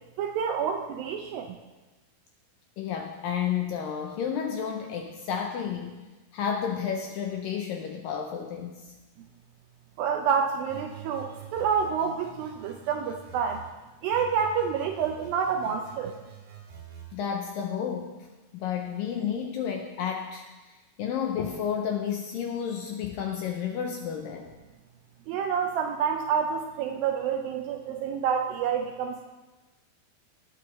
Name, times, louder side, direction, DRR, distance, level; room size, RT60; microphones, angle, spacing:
voice 1, 0.2-1.6 10.0-13.6 14.0-16.2 25.3-29.2, right 7 dB, 80° right, 4 dB, 2.1 m, -28 dB
voice 2, 2.8-5.9 6.3-8.9 17.1-18.1 18.5-20.5 21.0-24.5, left 8 dB, 80° left, 3 dB, 2.1 m, -31 dB
sound 1, 10.7-13.7 14.1-17.1, right 7 dB, 65° right, 3.7 m, -46 dB
19.0 x 9.2 x 3.1 m, 1.2 s
omnidirectional pair, 4.7 m